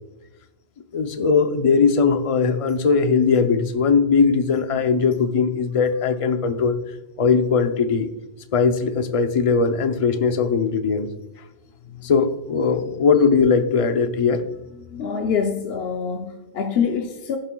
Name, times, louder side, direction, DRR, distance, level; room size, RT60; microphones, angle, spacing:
voice 1, 0.9-6.8 7.2-8.1 8.5-11.1 12.0-14.4, left 5 dB, 40° left, 8 dB, 0.6 m, -19 dB
voice 2, 14.9-17.4, left 6 dB, 75° left, 4 dB, 0.9 m, -25 dB
15.0 x 7.5 x 2.3 m, 1.0 s
omnidirectional pair, 1.1 m